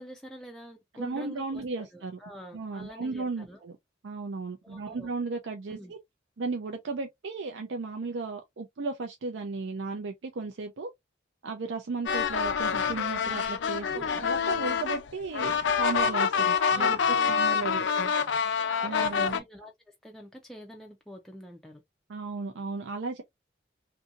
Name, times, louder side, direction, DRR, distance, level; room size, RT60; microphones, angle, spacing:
voice 1, 0.0-3.6 4.6-5.1 5.7-5.9 13.9-14.2 16.7-18.2 18.9-21.8, equal, ahead, 0.3 m, -46 dB
voice 2, 1.0-2.2 2.5-3.8 4.0-6.0 6.4-10.9 11.4-17.0 17.3-18.1 18.8-19.4 22.1-23.2, right 3 dB, 90° right, 0.5 m, -35 dB
sound 1, 12.1-19.4, left 6 dB, 80° left, 0.4 m, -27 dB
2.6 x 2.6 x 2.5 m
head